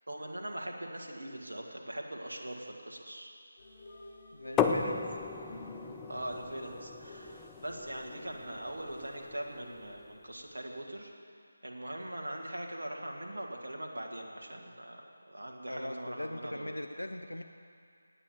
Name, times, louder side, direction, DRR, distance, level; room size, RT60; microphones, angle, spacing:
voice 1, 0.1-3.3 6.0-11.1 11.6-16.8, right 1 dB, 65° right, 0 dB, 2.1 m, -41 dB
sound 1, 3.6-9.2, left 1 dB, 35° left, 3.7 m, -51 dB
voice 2, 4.3-5.0 15.7-17.4, left 1 dB, 80° left, 6 dB, 0.8 m, -40 dB
sound 2, 4.6-10.2, left 6 dB, 10° left, 0.5 m, -36 dB
18.0 x 8.8 x 7.5 m, 2.3 s
figure-of-eight pair, 155°, 0 cm